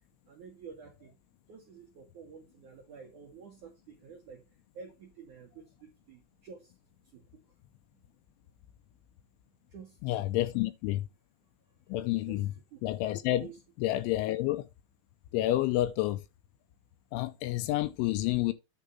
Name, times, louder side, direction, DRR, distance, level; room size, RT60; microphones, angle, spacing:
voice 1, 0.3-1.1 1.5-4.4 4.7-6.7 7.1-7.3 9.7-10.3 12.3-12.4 12.7-12.8 13.4-13.6, right 6 dB, 70° right, 1.8 m, -50 dB
voice 2, 10.0-11.1 11.9-12.5 12.8-13.5 13.8-14.7 15.3-16.2 17.1-18.5, left 15 dB, 85° left, 2.9 m, -29 dB
9.9 x 3.6 x 5.4 m
omnidirectional pair, 5.7 m